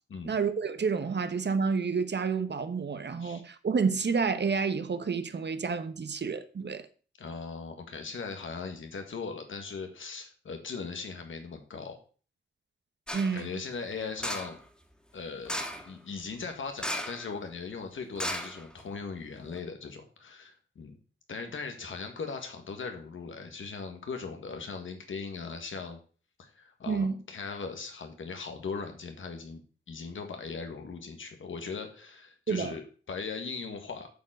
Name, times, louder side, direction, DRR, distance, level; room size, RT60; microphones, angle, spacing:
voice 1, 0.3-6.9 13.1-13.5 26.9-27.1 32.5-32.8, right 5 dB, 60° right, 1.0 m, -29 dB
voice 2, 7.2-12.0 13.1-14.6 15.1-21.0 21.3-26.0 26.4-29.6 29.9-34.1, left 5 dB, 80° left, 1.7 m, -39 dB
sound 1, 13.1-13.4 14.2-14.6 15.4-15.9 16.8-17.3 17.5-17.6 18.2-19.0 19.5-19.6, equal, 5° left, 2.2 m, -35 dB
8.2 x 4.6 x 6.4 m
cardioid pair, 45°, 20 cm